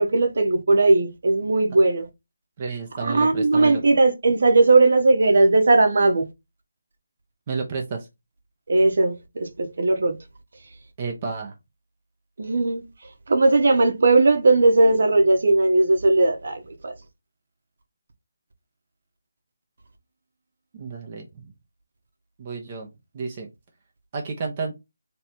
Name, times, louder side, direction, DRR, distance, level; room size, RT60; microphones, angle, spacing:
voice 1, 0.0-2.0 3.0-6.2 8.7-10.1 12.4-12.8 13.3-16.9, right 2 dB, 60° right, 1.2 m, -18 dB
voice 2, 2.6-3.8 7.5-8.1 11.0-11.5 20.7-21.3 22.4-22.9 23.1-23.5 24.1-24.7, right 4 dB, 30° right, 0.9 m, -31 dB
3.2 x 3.0 x 4.2 m
figure-of-eight pair, 165°, 0 cm